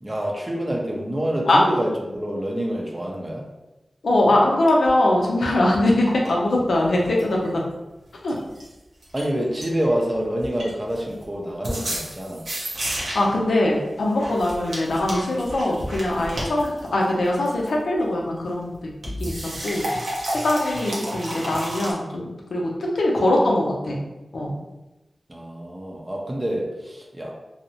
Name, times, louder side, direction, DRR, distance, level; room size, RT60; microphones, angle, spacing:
voice 1, 0.0-3.5 6.9-7.1 9.1-12.4 25.3-27.3, equal, 30° right, -1 dB, 0.5 m, -27 dB
voice 2, 4.0-7.6 8.2-8.4 13.1-18.7 19.2-19.8 20.3-24.0 24.3-24.5, left 1 dB, 85° left, -2 dB, 0.5 m, -22 dB
sound 1, 4.9-5.0 6.1-6.4 6.8-7.5 8.3-8.7 9.0-9.3 9.6-10.1 10.4-11.2 11.6-13.4 14.2-17.7 19.0-21.9, right 1 dB, 85° right, 0.6 m, -31 dB
2.7 x 2.0 x 2.8 m, 1.0 s
cardioid pair, 40°, 0 cm